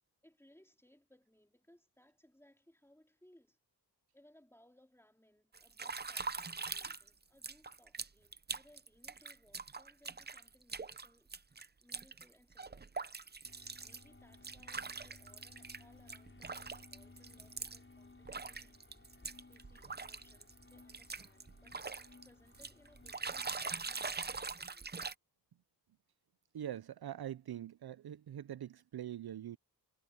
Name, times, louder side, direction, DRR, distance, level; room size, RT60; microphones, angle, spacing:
voice 1, 0.2-3.6 4.1-13.1 13.8-19.1 19.5-21.8 22.2-24.9, left 1 dB, 5° left, 3.4 m, -67 dB
sound 1, 5.5-7.1 7.4-15.8 16.1-17.8 18.2-22.3 22.5-25.1, right 4 dB, 25° right, 0.6 m, -43 dB
sound 2, 13.4-23.5, left 3 dB, 30° left, 5.3 m, -60 dB
voice 2, 26.5-29.6, right 11 dB, 70° right, 0.6 m, -43 dB
wide cardioid pair, 105°, 40 cm